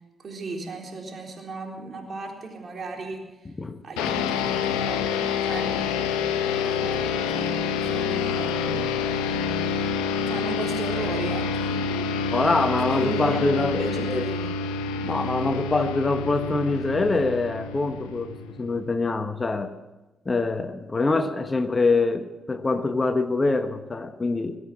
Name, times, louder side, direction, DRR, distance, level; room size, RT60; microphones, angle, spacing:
voice 1, 0.2-3.4 3.8-6.0 6.5-8.9 10.3-11.8 12.8-14.5, right 3 dB, 50° right, 1 dB, 3.9 m, -36 dB
voice 2, 3.6-4.1 12.3-14.3 15.0-19.7 20.2-24.6, left 3 dB, 35° left, 9 dB, 1.1 m, -25 dB
sound 1, 4.0-18.8, left 5 dB, 85° left, 0.9 m, -27 dB
21.0 x 8.1 x 7.4 m, 1.1 s
hypercardioid pair, 45°, 0 cm